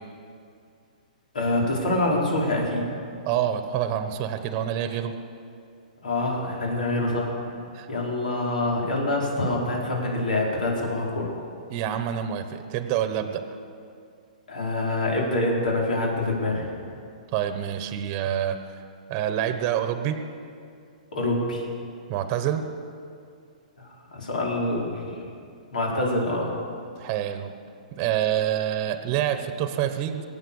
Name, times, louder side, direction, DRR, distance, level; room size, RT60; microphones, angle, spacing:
voice 1, 1.3-2.8 6.0-7.6 7.9-11.3 14.5-16.7 21.1-21.6 23.8-25.2 25.7-26.5, left 2 dB, 90° left, -2 dB, 4.9 m, -26 dB
voice 2, 3.3-5.1 7.7-7.9 11.7-13.4 17.3-18.8 19.1-20.2 22.1-22.6 27.0-27.5 28.0-30.2, right 10 dB, 30° right, 9 dB, 1.0 m, -27 dB
22.5 x 8.9 x 7.2 m, 2.4 s
hypercardioid pair, 155°, 4 cm